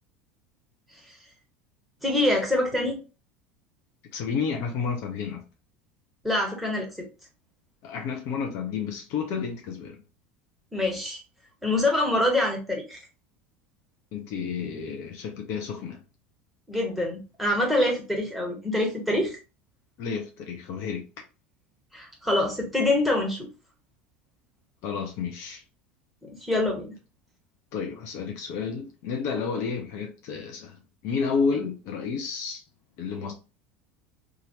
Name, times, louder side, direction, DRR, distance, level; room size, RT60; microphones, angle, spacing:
voice 1, 2.0-3.0 6.2-7.1 10.7-11.2 11.6-13.0 16.7-19.4 21.9-23.5 26.2-26.9, left 1 dB, ahead, 1.4 m, -25 dB
voice 2, 4.1-5.4 7.8-10.0 14.1-16.0 20.0-21.0 24.8-25.6 27.7-32.6 33.0-33.3, left 5 dB, 55° left, 0.6 m, -31 dB
2.8 x 2.5 x 3.0 m
figure-of-eight pair, 75°, 6 cm